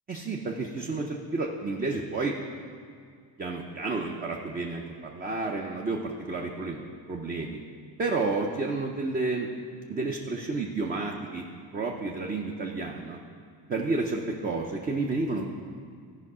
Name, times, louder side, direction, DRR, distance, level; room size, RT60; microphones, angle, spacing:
voice 1, 0.1-2.4 3.4-6.8 7.1-7.6 8.0-9.5 9.9-11.4 11.7-13.2 13.7-15.5, right 3 dB, 20° right, 0 dB, 0.5 m, -31 dB
15.5 x 5.3 x 4.8 m, 2.2 s
cardioid pair, 145°, 47 cm